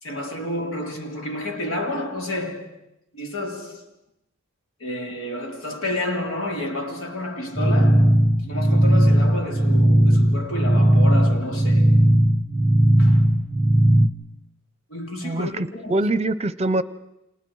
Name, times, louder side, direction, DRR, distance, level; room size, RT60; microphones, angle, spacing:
voice 1, 0.0-2.7 3.1-3.8 4.8-11.9 13.0-13.2 14.9-16.1, left 1 dB, 75° left, 3.3 m, -30 dB
sound 1, 7.6-14.1, right 1 dB, ahead, 1.0 m, -17 dB
voice 2, 15.2-16.8, right 2 dB, 30° right, 0.8 m, -24 dB
29.5 x 27.0 x 4.8 m
head